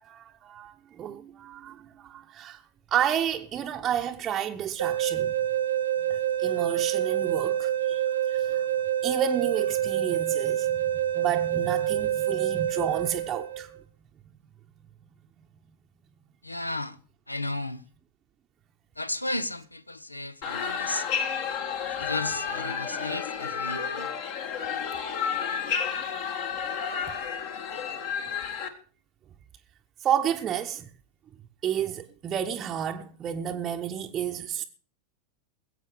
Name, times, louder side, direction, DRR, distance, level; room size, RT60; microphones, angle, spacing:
voice 1, 0.0-2.6 2.9-5.3 6.1-8.0 8.3-8.7 9.0-10.8 11.1-13.7 30.0-30.9 31.6-34.6, right 9 dB, 30° right, 0.8 m, -31 dB
sound 1, 4.8-13.7, right 11 dB, 70° right, 1.1 m, -27 dB
voice 2, 16.4-17.0 17.3-17.8 19.0-21.1 22.0-24.1, left 2 dB, 85° left, 0.7 m, -34 dB
sound 2, 20.4-28.7, left 7 dB, 50° left, 1.7 m, -31 dB
20.5 x 8.3 x 4.9 m
figure-of-eight pair, 90°, 0 cm